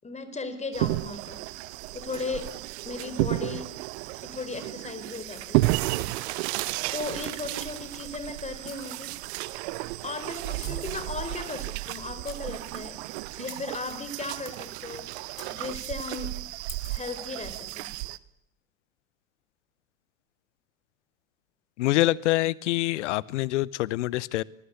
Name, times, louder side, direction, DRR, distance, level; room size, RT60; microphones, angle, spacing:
voice 1, 0.0-1.4 1.9-2.5 2.8-3.7 4.2-6.4 6.9-9.2 10.0-15.1 15.5-16.4 16.9-17.9, left 3 dB, 15° left, 4.6 m, -37 dB
sound 1, 0.7-18.2, right 20 dB, 55° right, 1.1 m, -32 dB
sound 2, 8.6-9.2 10.6-11.0 11.8-11.9 12.2-12.9 13.5-14.4 15.3-15.8 16.7-17.4, left 3 dB, 90° left, 2.3 m, -47 dB
voice 2, 21.8-24.4, left 17 dB, 60° left, 1.0 m, -25 dB
24.0 x 20.5 x 8.5 m
figure-of-eight pair, 75°, 39 cm